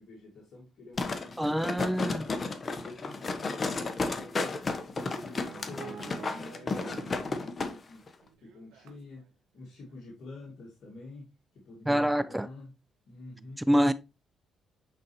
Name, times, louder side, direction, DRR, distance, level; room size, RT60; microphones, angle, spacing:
voice 1, 0.0-2.4 2.8-8.0 8.4-9.3 9.5-12.8 13.1-13.7, left 2 dB, 65° left, 2.2 m, -48 dB
sound 1, 1.0-7.7 8.1-8.2, left 3 dB, 35° left, 1.2 m, -33 dB
voice 2, 1.4-2.3 11.9-12.5 13.7-13.9, equal, 5° right, 0.3 m, -25 dB
sound 2, 5.4-7.3 7.6-9.2 9.7-9.9, right 7 dB, 85° right, 1.0 m, -47 dB
9.0 x 4.1 x 3.0 m
cardioid pair, 90°, 0 cm